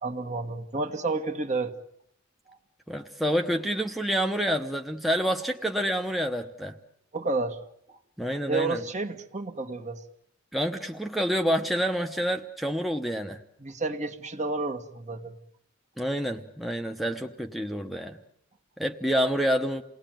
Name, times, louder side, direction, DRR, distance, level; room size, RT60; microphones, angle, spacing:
voice 1, 0.0-1.7 2.5-2.6 7.1-7.6 7.9-8.0 8.5-10.0 13.6-15.4, right 3 dB, 35° right, 6 dB, 1.7 m, -30 dB
voice 2, 2.9-6.8 8.2-8.8 10.5-13.4 16.0-18.2 18.8-19.8, equal, ahead, 3 dB, 1.0 m, -28 dB
29.0 x 19.0 x 9.1 m, 0.74 s
head